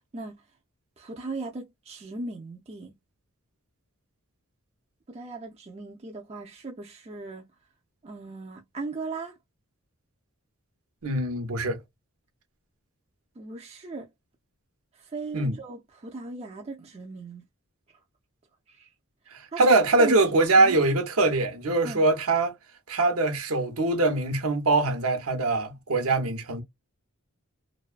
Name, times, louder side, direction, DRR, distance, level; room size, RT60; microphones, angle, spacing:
voice 1, 1.0-2.9 5.1-7.5 8.0-9.4 13.4-14.1 15.0-17.4 18.7-18.9 19.5-19.6 20.0-20.2 20.5-20.8 21.8-22.0, right 3 dB, 30° right, 0.4 m, -37 dB
voice 2, 11.0-11.8 15.3-15.6 19.6-22.5 22.9-26.6, right 2 dB, 75° right, 0.8 m, -23 dB
2.6 x 2.2 x 2.4 m
head